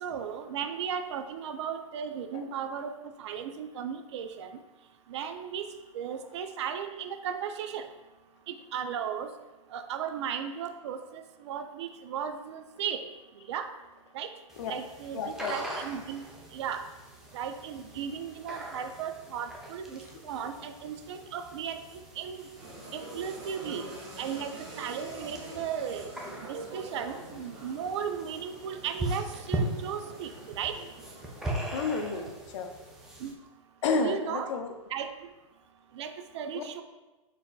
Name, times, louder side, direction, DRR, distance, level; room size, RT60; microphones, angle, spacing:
voice 1, 0.0-4.5 5.1-5.6 5.9-7.9 8.5-9.3 9.7-13.1 13.5-13.7 14.1-14.3 14.7-16.2 16.5-16.8 17.3-21.8 22.2-22.4 22.9-23.8 24.2-26.1 26.5-30.8 33.2-33.3 34.0-34.5 34.9-35.1 35.9-36.8, right 8 dB, 55° right, 8 dB, 0.4 m, -36 dB
sound 1, 14.5-33.3, right 1 dB, 5° right, 0.5 m, -40 dB
voice 2, 15.1-15.6 31.5-32.7 33.8-34.7 36.5-36.6, left 4 dB, 60° left, 5 dB, 0.6 m, -31 dB
sound 2, 22.5-31.8, right 2 dB, 35° right, 1.4 m, -45 dB
4.1 x 4.0 x 2.3 m, 1.1 s
hypercardioid pair, 125°, 17 cm